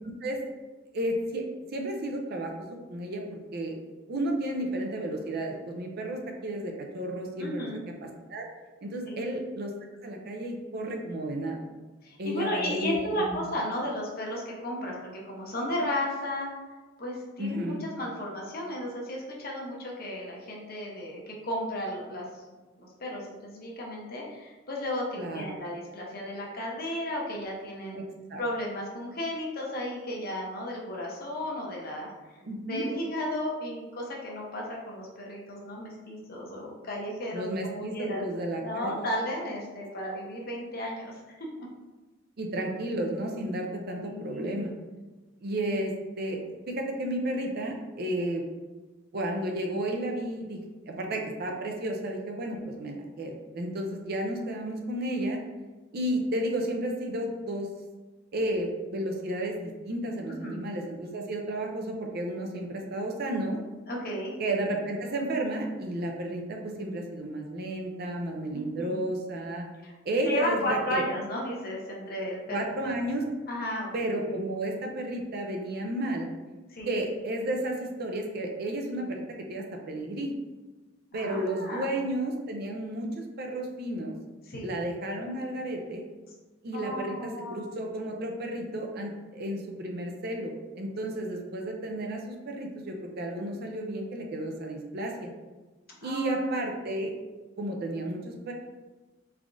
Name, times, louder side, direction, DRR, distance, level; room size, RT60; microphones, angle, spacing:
voice 1, 0.9-1.4 1.7-2.5 2.9-3.7 4.1-7.7 8.0-8.4 8.8-9.7 10.0-11.6 12.2-13.3 17.4-17.8 25.2-25.6 27.9-28.0 28.3-28.4 32.4-32.9 37.3-39.1 42.4-44.7 45.4-46.4 46.7-48.4 49.1-55.4 55.9-57.7 58.3-63.6 64.4-69.7 70.0-71.0 72.5-73.2 73.9-76.3 76.9-79.2 79.5-80.3 81.1-84.1 84.6-86.0 86.6-95.3 96.0-97.1 97.6-98.5, right 1 dB, 55° right, 2 dB, 0.5 m, -32 dB
voice 2, 7.4-7.8 9.1-9.3 12.0-16.5 17.0-22.4 22.8-28.0 28.4-32.1 32.6-38.3 38.6-41.7 44.0-44.7 52.5-52.7 60.3-60.6 63.9-64.3 68.5-69.1 69.8-69.9 70.2-72.6 72.8-72.9 73.5-73.9 76.7-76.9 81.1-81.9 84.4-84.7 86.7-87.7 91.0-91.3 96.0-96.6, left 1 dB, 50° left, -2 dB, 0.8 m, -34 dB
3.5 x 3.4 x 2.6 m, 1.2 s
head